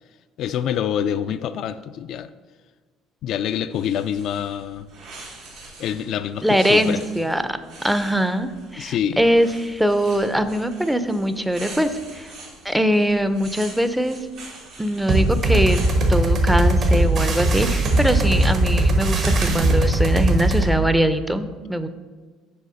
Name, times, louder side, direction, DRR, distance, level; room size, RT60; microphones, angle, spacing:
voice 1, 0.4-2.3 3.2-4.9 5.8-7.0 8.8-9.2, left 9 dB, 65° left, 11 dB, 0.3 m, -26 dB
sound 1, 3.7-19.5, right 3 dB, 80° right, 2.3 m, -42 dB
voice 2, 6.4-12.3 12.6-14.2 14.8-15.8 16.1-21.9, equal, 5° right, 11 dB, 0.5 m, -22 dB
sound 2, 15.1-20.7, right 1 dB, 55° right, 1.4 m, -19 dB
6.4 x 4.9 x 5.5 m, 1.4 s
supercardioid pair, 90°, 0 cm